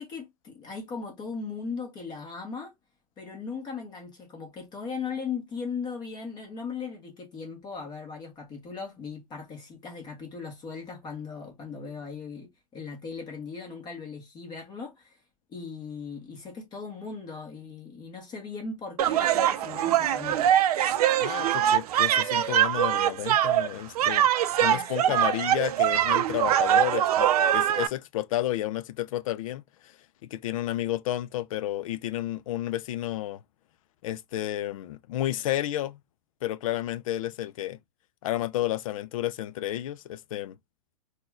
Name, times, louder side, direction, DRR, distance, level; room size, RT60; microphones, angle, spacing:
voice 1, 0.0-2.7 3.2-15.2 15.5-20.5 24.7-25.2, left 5 dB, 20° left, 1.1 m, -38 dB
sound 1, 19.0-27.9, right 11 dB, 70° right, 0.5 m, -23 dB
voice 2, 21.2-24.3 24.6-30.0 30.3-33.4 34.0-36.0 36.4-37.8 38.2-40.5, left 13 dB, 60° left, 0.4 m, -31 dB
4.0 x 2.3 x 2.4 m
hypercardioid pair, 150°, 20 cm